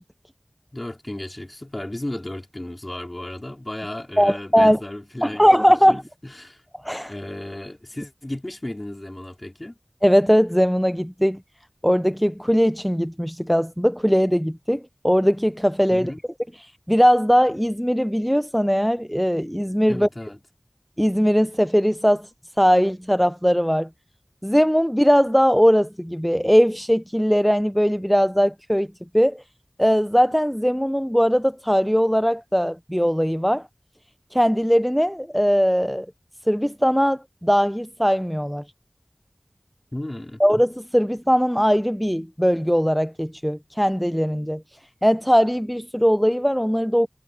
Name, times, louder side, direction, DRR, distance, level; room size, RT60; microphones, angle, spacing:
voice 1, 0.7-5.6 5.9-6.6 7.0-9.8 15.9-16.2 19.9-20.4 39.9-40.4, left 1 dB, 35° left, 4.1 m, -34 dB
voice 2, 4.2-4.8 5.2-6.0 6.8-7.1 10.0-11.4 11.8-16.1 16.9-20.1 21.0-22.3 22.6-23.9 24.4-28.9 29.1-29.4 29.8-33.6 34.3-36.1 36.5-38.6 40.4-44.6 45.0-47.1, equal, ahead, 0.5 m, -20 dB
wide cardioid pair, 40°, 0 cm